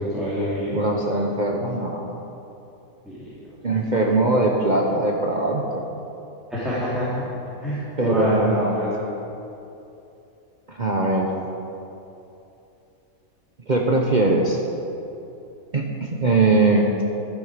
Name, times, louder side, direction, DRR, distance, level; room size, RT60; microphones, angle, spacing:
voice 1, 0.0-0.8 3.0-3.2 6.5-7.2 7.6-9.0, equal, ahead, -12 dB, 3.1 m, -25 dB
voice 2, 0.7-2.2 3.6-5.8 8.0-8.8 10.7-11.3 13.7-14.6 15.7-17.0, right 2 dB, 35° right, 0 dB, 1.0 m, -21 dB
13.0 x 11.0 x 5.1 m, 2.8 s
omnidirectional pair, 1.5 m